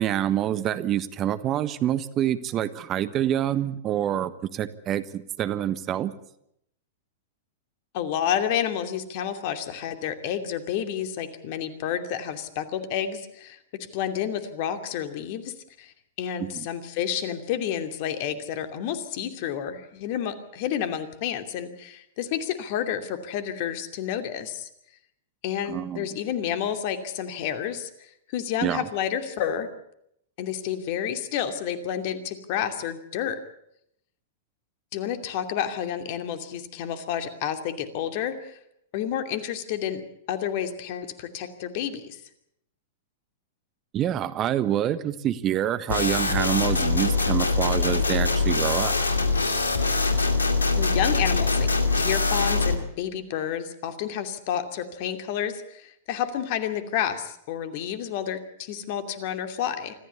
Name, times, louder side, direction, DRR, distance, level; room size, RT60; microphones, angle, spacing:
voice 1, 0.0-6.1 16.4-16.7 25.7-26.1 28.6-28.9 43.9-49.0, right 11 dB, 35° right, 14 dB, 1.4 m, -26 dB
voice 2, 7.9-13.6 13.9-24.7 25.4-29.7 30.4-33.4 34.9-38.6 38.9-40.0 40.3-42.2 50.8-51.7 52.0-59.9, left 9 dB, 50° left, 8 dB, 2.7 m, -30 dB
sound 1, 45.9-52.7, left 3 dB, 90° left, 2.4 m, -23 dB
25.5 x 14.5 x 8.5 m, 0.75 s
hypercardioid pair, 105°, 0 cm